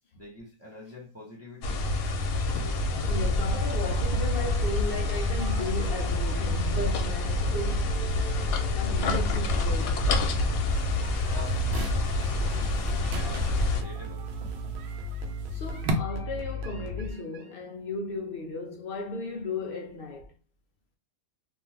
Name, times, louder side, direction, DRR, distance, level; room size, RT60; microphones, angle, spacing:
voice 1, 0.1-1.8 11.3-11.6 13.0-14.3, left 2 dB, 15° right, 0.7 m, -45 dB
sound 1, 1.6-13.8, left 2 dB, 85° left, 1.1 m, -27 dB
sound 2, 2.6-17.5, equal, 85° right, 1.1 m, -35 dB
voice 2, 3.0-7.9 8.8-10.2 11.9-13.5 15.5-20.3, left 2 dB, 65° left, 0.6 m, -36 dB
sound 3, 10.7-15.9, right 2 dB, 55° right, 0.6 m, -39 dB
2.6 x 2.3 x 3.2 m
omnidirectional pair, 1.5 m